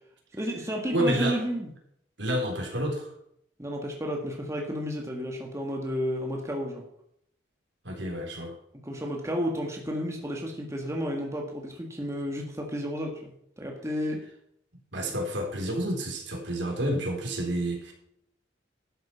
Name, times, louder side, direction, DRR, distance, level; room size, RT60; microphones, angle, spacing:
voice 1, 0.3-1.7 3.6-6.8 8.8-14.2, equal, 15° right, 1 dB, 1.7 m, -32 dB
voice 2, 0.9-1.4 2.2-3.1 7.8-8.5 14.9-17.9, equal, 70° right, 1 dB, 3.7 m, -29 dB
12.0 x 7.9 x 5.8 m, 0.72 s
head